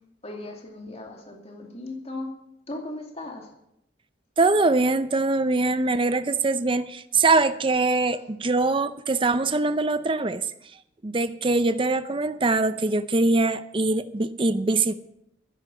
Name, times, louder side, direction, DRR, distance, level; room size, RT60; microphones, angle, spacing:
voice 1, 0.2-2.3 2.7-3.5, left 2 dB, 35° left, 1 dB, 2.5 m, -37 dB
voice 2, 4.4-10.5 11.0-14.9, right 3 dB, 30° right, 11 dB, 0.6 m, -23 dB
12.5 x 10.5 x 7.1 m, 0.78 s
head